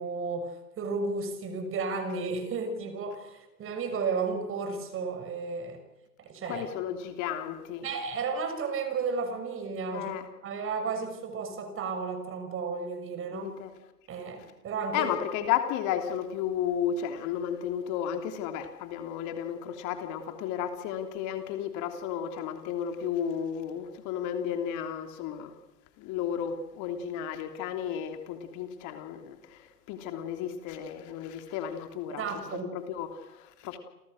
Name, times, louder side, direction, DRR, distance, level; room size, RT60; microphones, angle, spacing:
voice 1, 0.0-5.8 6.2-6.7 7.8-10.1 10.4-13.5 14.1-15.1 32.1-32.7, right 4 dB, 25° right, 6.4 m, -33 dB
voice 2, 6.4-7.8 9.9-10.3 13.3-13.7 14.9-25.6 26.0-32.2 32.5-33.8, left 9 dB, 35° left, 3.2 m, -33 dB
29.5 x 27.5 x 6.6 m
hypercardioid pair, 115°, 49 cm